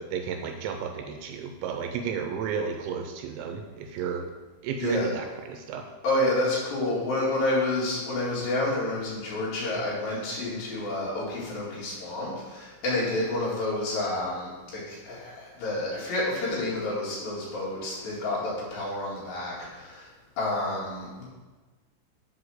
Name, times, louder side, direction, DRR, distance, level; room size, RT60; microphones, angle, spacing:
voice 1, 0.0-4.3 4.6-5.9, right 6 dB, 85° right, 5 dB, 2.8 m, -32 dB
voice 2, 4.8-5.1 6.0-20.1 20.4-21.2, left 2 dB, 55° left, -7 dB, 3.7 m, -29 dB
8.5 x 5.0 x 6.3 m, 1.3 s
omnidirectional pair, 5.5 m